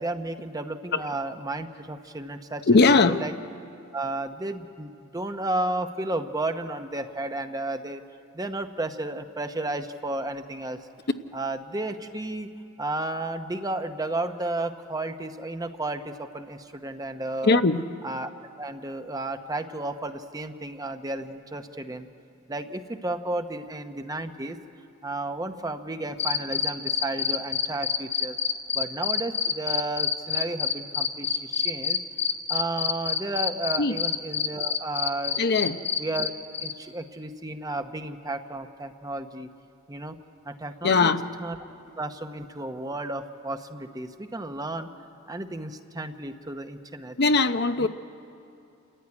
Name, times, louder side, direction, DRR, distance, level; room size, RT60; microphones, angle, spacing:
voice 1, 0.0-3.3 3.9-8.0 8.3-10.8 11.3-12.5 12.8-17.6 18.0-18.3 18.6-22.1 22.5-24.6 25.0-28.4 28.7-32.0 32.5-35.4 36.0-36.3 36.6-39.5 39.9-40.2 40.4-41.6 42.0-44.9 45.3-47.2 47.8-47.9, right 2 dB, 20° right, 0.9 m, -33 dB
voice 2, 2.7-3.2 17.4-17.8 33.8-33.9 35.4-35.8 40.8-41.2 47.2-47.9, left 3 dB, 50° left, 0.7 m, -20 dB
sound 1, 26.2-36.3 36.5-36.7, left 7 dB, 30° left, 1.1 m, -26 dB
28.5 x 14.5 x 9.6 m
head